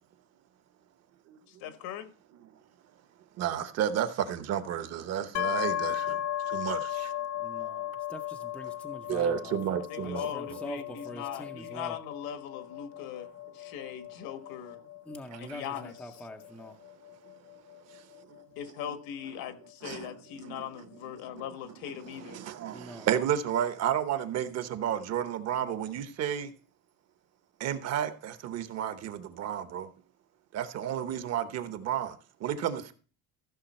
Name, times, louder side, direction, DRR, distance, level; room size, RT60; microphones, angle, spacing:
voice 1, 1.5-2.1 9.9-14.8 15.4-15.9 18.6-22.4, left 9 dB, 70° left, 1.4 m, -40 dB
voice 2, 3.4-6.2 6.5-7.1 9.1-10.3 17.9-18.0 18.8-18.9 19.8-20.1 20.4-20.6 21.3-21.4 22.1-26.5 27.6-29.9 30.5-32.9, right 9 dB, 45° right, 1.0 m, -32 dB
sound 1, 5.3-19.0, left 11 dB, 50° left, 0.5 m, -37 dB
voice 3, 7.3-12.0 15.1-16.8 22.7-23.1, left 1 dB, 5° left, 0.5 m, -44 dB
14.5 x 6.1 x 4.3 m
cardioid pair, 165°, 38 cm